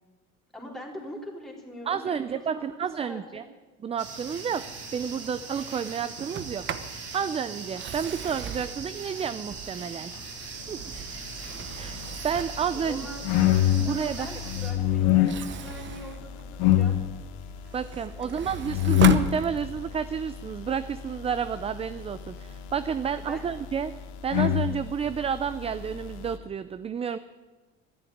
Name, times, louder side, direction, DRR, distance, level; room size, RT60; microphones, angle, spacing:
voice 1, 0.5-3.4 12.7-13.2 13.8-17.0 18.1-18.5 23.1-23.5 25.0-25.1, left 1 dB, ahead, -3 dB, 3.7 m, -42 dB
voice 2, 1.9-3.4 3.8-4.6 4.9-6.6 7.1-10.1 10.7-10.9 11.7-13.1 13.8-14.3 17.7-23.9 24.2-27.2, right 7 dB, 20° right, 13 dB, 0.4 m, -30 dB
sound 1, 4.0-14.7, right 4 dB, 55° right, 3.6 m, -40 dB
Sliding door, 6.2-7.0 7.6-10.0 10.5-12.7 15.1-17.0 17.5-20.0, right 8 dB, 40° right, 0.9 m, -36 dB
sound 2, 10.9-26.4, left 12 dB, 90° left, 1.1 m, -28 dB
13.0 x 11.0 x 9.3 m, 1.3 s
cardioid pair, 125°, 29 cm